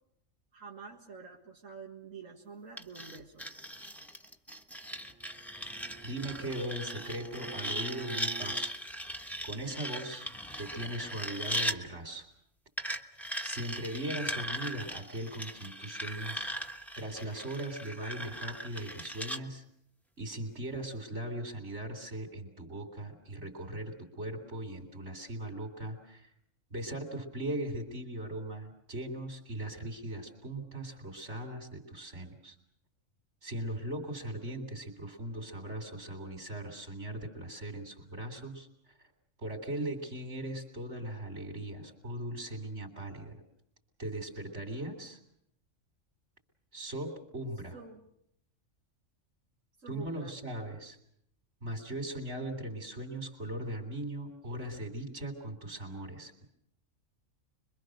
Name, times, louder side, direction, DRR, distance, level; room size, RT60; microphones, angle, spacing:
voice 1, 0.5-3.5 47.7-48.1 49.8-50.3, right 5 dB, 85° right, -1 dB, 2.2 m, -48 dB
sound 1, 2.8-11.8 12.8-19.4, equal, ahead, 1.1 m, -38 dB
Bowed string instrument, 4.9-8.7, right 5 dB, 15° right, 1.3 m, -48 dB
voice 2, 6.0-8.7 9.4-10.3 10.6-12.3 13.4-16.5 17.0-19.6 20.2-26.3 26.7-32.6 33.4-38.7 39.4-43.3 44.0-45.2 46.7-47.8 49.9-51.0 51.6-56.5, right 1 dB, 55° right, 5 dB, 4.0 m, -39 dB
25.5 x 23.5 x 6.5 m, 0.73 s
omnidirectional pair, 1.3 m